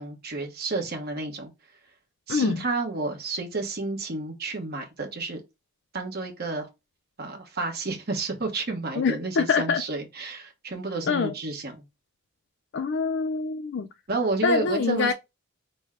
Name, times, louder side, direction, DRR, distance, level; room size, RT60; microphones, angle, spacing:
voice 1, 0.0-1.5 2.3-5.4 5.9-6.7 7.2-11.8 14.1-15.1, right 3 dB, 45° right, 1.1 m, -30 dB
voice 2, 2.3-2.6 9.0-9.8 11.1-11.3 12.7-13.9 14.4-15.1, left 5 dB, 50° left, 0.4 m, -25 dB
5.3 x 2.1 x 3.6 m
head